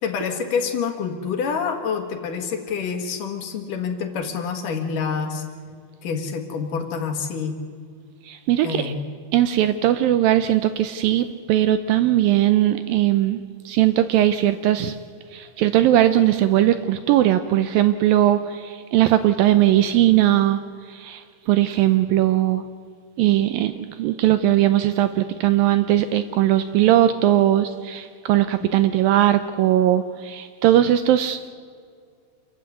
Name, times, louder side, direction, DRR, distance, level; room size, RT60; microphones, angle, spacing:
voice 1, 0.0-5.4 6.0-7.6 8.6-9.0 28.6-28.7, left 6 dB, 60° left, 6 dB, 3.1 m, -27 dB
voice 2, 8.3-8.9 9.3-15.0 15.3-20.6 20.9-22.6 23.2-31.5, right 13 dB, 75° right, 12 dB, 2.2 m, -19 dB
27.0 x 15.0 x 9.5 m, 2.1 s
omnidirectional pair, 4.6 m